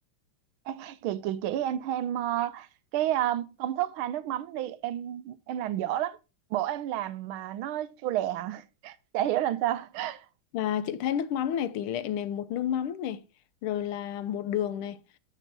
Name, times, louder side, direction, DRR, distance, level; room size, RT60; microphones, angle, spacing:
voice 1, 0.7-2.7 2.9-6.2 6.5-10.2, right 12 dB, 80° right, 1.5 m, -30 dB
voice 2, 10.5-13.2 13.6-15.0, left 10 dB, 90° left, 1.6 m, -30 dB
7.3 x 6.7 x 4.5 m
omnidirectional pair, 2.3 m